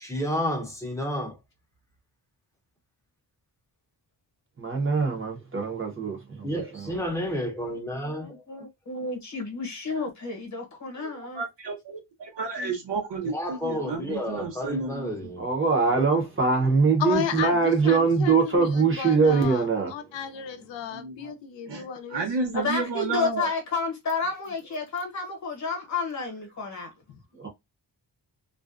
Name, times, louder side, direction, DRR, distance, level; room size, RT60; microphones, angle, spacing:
voice 1, 0.0-1.4 6.4-8.4 13.2-15.5, equal, 5° left, 0.6 m, -31 dB
voice 2, 4.6-6.9 15.4-19.9 26.8-26.9 27.4-27.5, right 4 dB, 30° right, 0.7 m, -23 dB
voice 3, 7.9-11.4 12.6-12.7 22.5-26.9, left 4 dB, 40° left, 0.9 m, -31 dB
voice 4, 11.3-15.1 20.9-21.3 21.7-23.5, right 4 dB, 70° right, 0.9 m, -32 dB
voice 5, 17.0-19.6 19.9-22.7, left 8 dB, 80° left, 0.6 m, -33 dB
2.5 x 2.1 x 2.4 m
wide cardioid pair, 160°, 43 cm